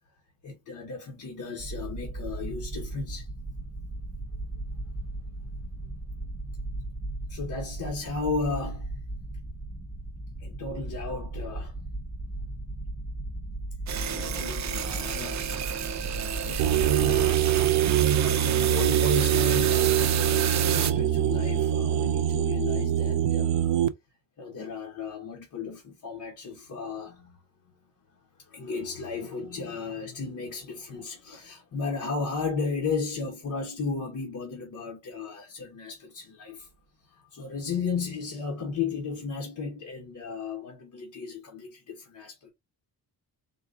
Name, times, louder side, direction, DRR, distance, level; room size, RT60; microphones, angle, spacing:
voice 1, 0.4-3.3 7.3-8.9 10.4-11.7 14.0-15.6 16.4-23.7 24.4-27.4 27.6-27.7 28.4-36.7 37.1-42.5, left 4 dB, 45° left, 1.1 m, -34 dB
sound 1, 1.6-17.7, right 2 dB, 5° right, 0.8 m, -36 dB
sound 2, 13.9-20.9, right 8 dB, 45° right, 0.6 m, -30 dB
sound 3, 16.6-23.9, right 11 dB, 90° right, 0.6 m, -24 dB
4.0 x 2.5 x 3.6 m
wide cardioid pair, 155°, 41 cm